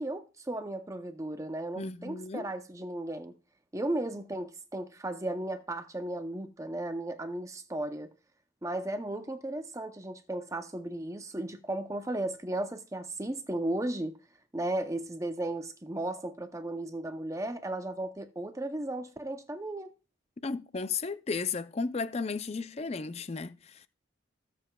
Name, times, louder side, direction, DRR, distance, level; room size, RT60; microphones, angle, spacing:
voice 1, 0.0-3.4 3.7-8.1 8.6-14.2 14.5-19.9, right 1 dB, 15° right, 0.6 m, -35 dB
voice 2, 1.8-2.5 20.4-23.9, left 4 dB, 30° left, 0.4 m, -34 dB
17.5 x 7.7 x 2.3 m
head